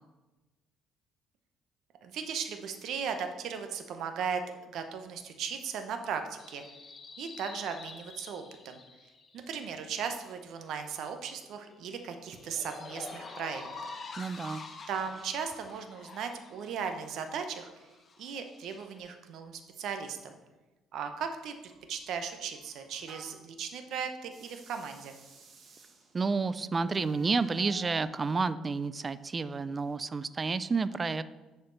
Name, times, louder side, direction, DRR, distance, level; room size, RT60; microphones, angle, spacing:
voice 1, 2.0-6.6 7.2-8.8 9.3-13.7 14.9-17.7 18.2-20.4 20.9-25.2, right 6 dB, 70° right, 7 dB, 0.8 m, -37 dB
sound 1, 6.4-10.2 11.2-16.9 17.3-19.0, left 4 dB, 35° left, 0.9 m, -47 dB
voice 2, 14.2-14.6 26.1-31.2, right 4 dB, 25° right, 15 dB, 0.3 m, -30 dB
sound 2, 21.7-23.5 24.2-28.2, right 2 dB, 50° right, 1.3 m, -54 dB
9.6 x 4.3 x 3.9 m, 1.1 s
cardioid pair, 115°, 0 cm